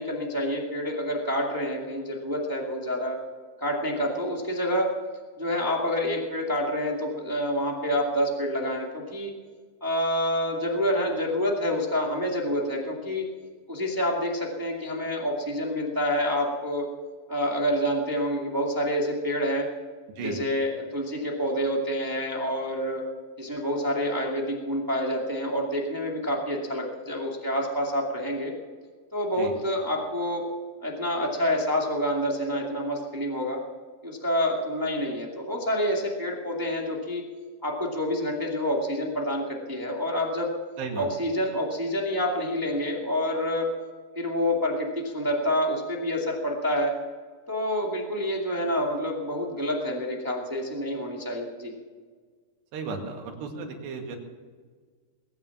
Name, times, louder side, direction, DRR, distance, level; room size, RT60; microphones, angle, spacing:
voice 1, 0.0-3.2 3.6-4.9 5.4-9.3 9.8-13.2 13.7-16.9 17.3-19.7 20.2-23.0 23.4-28.5 29.1-30.4 30.8-33.6 34.0-37.2 37.6-40.5 41.0-43.7 44.1-46.9 47.5-51.7, equal, 20° right, -1 dB, 0.5 m, -27 dB
voice 2, 52.7-54.2, right 4 dB, 85° right, 1 dB, 4.4 m, -34 dB
20.5 x 9.5 x 7.2 m, 1.5 s
omnidirectional pair, 4.7 m